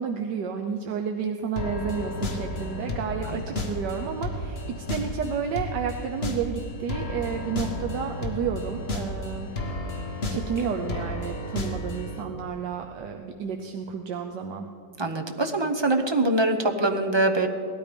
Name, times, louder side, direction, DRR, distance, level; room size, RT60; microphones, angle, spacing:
voice 1, 0.0-9.8 10.3-14.7, right 6 dB, 80° right, 4 dB, 1.4 m, -31 dB
sound 1, 1.6-12.2, left 1 dB, 40° left, 1.5 m, -32 dB
voice 2, 15.0-17.5, right 2 dB, 25° right, 4 dB, 0.5 m, -23 dB
17.5 x 13.0 x 5.2 m, 2.6 s
omnidirectional pair, 1.9 m